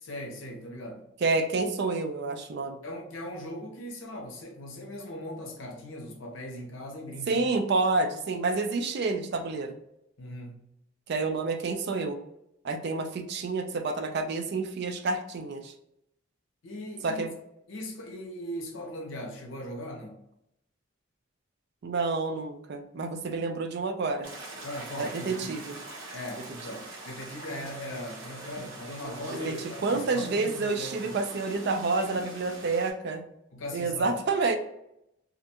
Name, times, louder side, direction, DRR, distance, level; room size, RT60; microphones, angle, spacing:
voice 1, 0.0-1.1 2.8-7.4 10.2-10.6 16.6-17.2 17.7-20.2 24.6-25.7 26.1-31.2 33.5-34.2, left 1 dB, 75° left, 0.6 m, -39 dB
voice 2, 1.2-2.8 7.3-9.7 11.1-12.2 12.6-15.7 17.0-17.3 21.8-24.3 25.0-25.8 29.4-29.5 29.8-33.2 33.7-34.6, right 3 dB, 55° right, 0.4 m, -29 dB
sound 1, 24.2-32.9, right 1 dB, 85° right, 0.9 m, -43 dB
2.4 x 2.1 x 2.8 m
head